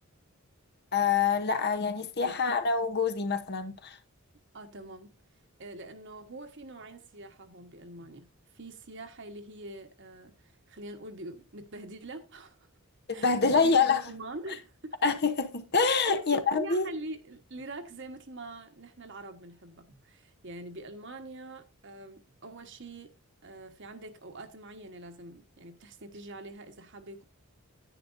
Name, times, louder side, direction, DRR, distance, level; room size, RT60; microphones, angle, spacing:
voice 1, 0.9-4.0 13.1-14.0 15.0-16.9, left 5 dB, 45° left, 0.9 m, -26 dB
voice 2, 4.5-5.1 5.6-8.3 8.5-12.7 13.1-15.0 16.0-23.1 23.4-27.2, right 2 dB, 55° right, 1.3 m, -44 dB
10.5 x 9.2 x 2.6 m
head